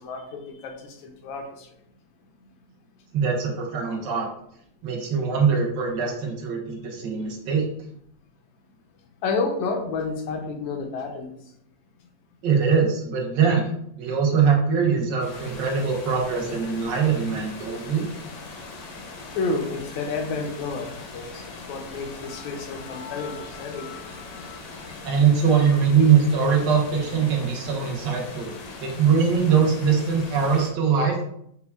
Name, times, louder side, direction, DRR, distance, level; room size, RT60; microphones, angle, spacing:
voice 1, 0.0-1.8 9.2-11.5 19.3-24.9, left 4 dB, 90° left, 3 dB, 1.4 m, -31 dB
voice 2, 3.1-4.3 4.8-7.7 12.4-13.7 13.9-18.0 25.0-28.5 28.8-31.2, right 6 dB, 75° right, 0 dB, 1.4 m, -22 dB
sound 1, 15.2-30.7, left 3 dB, 70° left, 1.0 m, -40 dB
5.3 x 2.2 x 2.3 m, 0.71 s
omnidirectional pair, 2.0 m